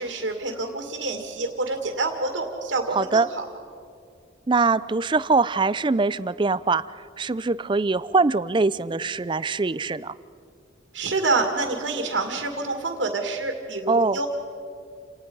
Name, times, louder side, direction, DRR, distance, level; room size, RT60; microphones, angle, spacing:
voice 1, 0.0-3.5 10.9-14.3, right 3 dB, 80° right, 3 dB, 2.3 m, -27 dB
voice 2, 2.9-3.3 4.5-6.8 7.2-10.1 13.9-14.2, right 3 dB, 25° right, 17 dB, 0.4 m, -22 dB
29.0 x 18.5 x 5.5 m, 2.3 s
head